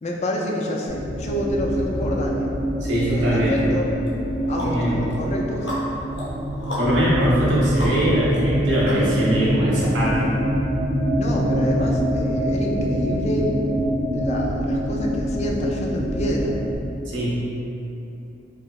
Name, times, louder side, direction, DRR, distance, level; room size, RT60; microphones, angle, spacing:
voice 1, 0.0-2.5 3.1-3.9 4.5-5.7 11.2-13.6 14.1-16.6, left 1 dB, 35° left, -1 dB, 0.3 m, -28 dB
sound 1, 0.9-16.8, equal, 5° right, 0.7 m, -25 dB
sound 2, 1.7-5.7, left 1 dB, 35° right, 0.9 m, -35 dB
voice 2, 2.8-3.6 4.6-5.0 6.8-10.3 17.0-17.3, right 1 dB, 75° right, -7 dB, 0.8 m, -22 dB
sound 3, 3.5-3.6 4.1-9.4, left 1 dB, 70° left, 0.8 m, -35 dB
4.7 x 2.0 x 2.3 m, 2.9 s
head